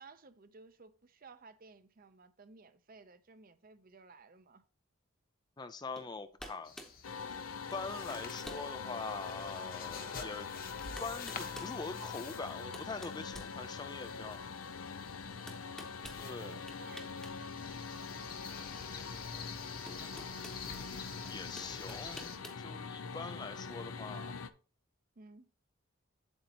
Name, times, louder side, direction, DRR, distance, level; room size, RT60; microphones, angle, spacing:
voice 1, 0.0-4.6 15.8-16.1 16.4-18.1 19.9-20.2 25.2-25.5, right 4 dB, 40° right, 0.6 m, -57 dB
voice 2, 5.6-6.7 7.7-10.5 11.0-14.4 16.2-16.6 20.9-21.0 21.3-24.3, left 4 dB, 20° left, 0.3 m, -43 dB
sound 1, 6.0-6.1 6.4-7.0 7.7-7.8 8.1-8.7 9.3-9.4 10.4-10.5 11.0-11.8 12.4-14.1 15.5-16.2 16.7-17.4 17.7-17.8 19.2-19.3 19.9-20.6 21.6-22.6, equal, 5° left, 0.9 m, -50 dB
sound 2, 6.6-22.4, left 5 dB, 40° left, 1.1 m, -49 dB
sound 3, 7.0-24.5, left 5 dB, 75° left, 0.6 m, -44 dB
8.0 x 7.9 x 2.9 m
head